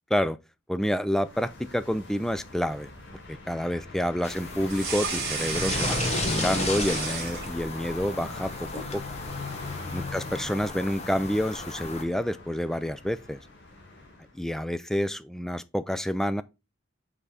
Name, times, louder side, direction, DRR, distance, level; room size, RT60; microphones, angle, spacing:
voice 1, 0.7-2.9 3.3-9.0 9.9-13.4 14.3-16.4, equal, ahead, 0.4 m, -28 dB
sound 1, 1.1-14.4, left 3 dB, 60° left, 2.1 m, -42 dB
sound 2, 4.2-12.0, left 2 dB, 35° left, 1.0 m, -34 dB
sound 3, 4.7-7.9 8.2-8.9, right 5 dB, 55° right, 2.4 m, -33 dB
5.6 x 4.9 x 4.0 m
head